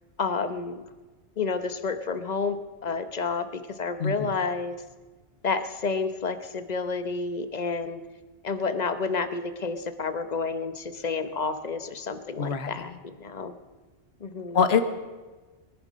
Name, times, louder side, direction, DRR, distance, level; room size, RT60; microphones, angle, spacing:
voice 1, 0.2-0.8 1.4-2.6 2.8-4.8 5.4-8.0 8.4-13.5 14.2-14.6, left 4 dB, 40° left, 10 dB, 0.9 m, -30 dB
voice 2, 4.0-4.3 12.4-13.0 14.5-14.8, left 6 dB, 65° left, 9 dB, 1.2 m, -24 dB
22.5 x 10.5 x 5.1 m, 1.3 s
omnidirectional pair, 1.2 m